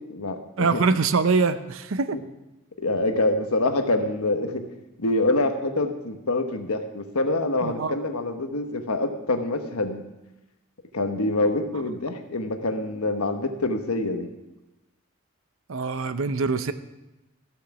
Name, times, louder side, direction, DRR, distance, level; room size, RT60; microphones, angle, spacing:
voice 1, 0.0-0.4 2.8-4.6 5.0-10.0 10.9-14.3, left 2 dB, 90° left, 6 dB, 1.2 m, -25 dB
voice 2, 0.6-2.2 7.6-8.0 15.7-16.7, right 4 dB, 70° right, 12 dB, 0.6 m, -23 dB
14.5 x 7.2 x 6.0 m, 0.98 s
head